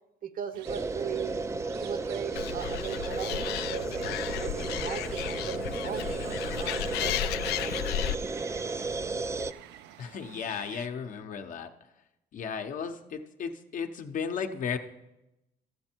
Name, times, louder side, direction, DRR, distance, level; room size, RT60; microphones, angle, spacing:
voice 1, 0.2-7.7, right 9 dB, 55° right, 11 dB, 0.8 m, -39 dB
sound 1, 0.5-10.9, right 11 dB, 85° right, 0.5 m, -51 dB
sound 2, 0.6-9.5, right 3 dB, 15° right, 0.4 m, -34 dB
Animal, 2.4-8.2, left 12 dB, 80° left, 0.4 m, -33 dB
voice 2, 10.0-11.7 12.3-14.8, left 6 dB, 50° left, 7 dB, 0.8 m, -35 dB
13.0 x 7.7 x 4.5 m, 0.93 s
cardioid pair, 110°, 17 cm